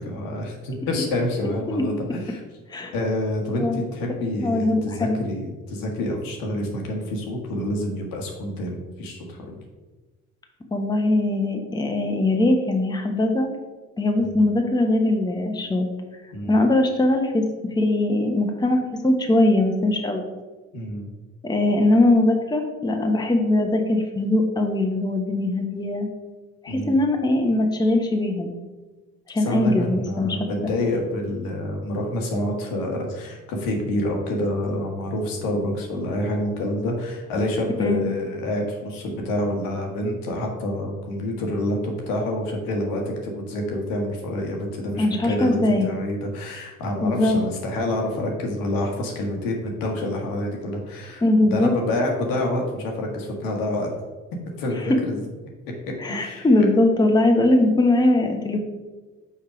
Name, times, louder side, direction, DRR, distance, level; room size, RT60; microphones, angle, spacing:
voice 1, 0.0-2.4 2.9-9.6 16.3-16.5 20.7-21.0 26.7-27.0 29.4-51.2 51.5-53.9 54.5-55.3 55.9-56.5, left 1 dB, 70° left, 1 dB, 1.3 m, -27 dB
voice 2, 4.4-5.2 10.7-13.5 14.0-15.9 16.5-17.5 17.7-20.3 21.4-26.1 26.6-28.5 29.3-30.5 37.8-38.1 45.0-45.9 47.0-47.4 51.2-51.8 54.8-54.9 56.0-58.6, left 2 dB, 10° left, 3 dB, 0.9 m, -21 dB
5.6 x 4.3 x 5.0 m, 1.2 s
figure-of-eight pair, 50°, 37 cm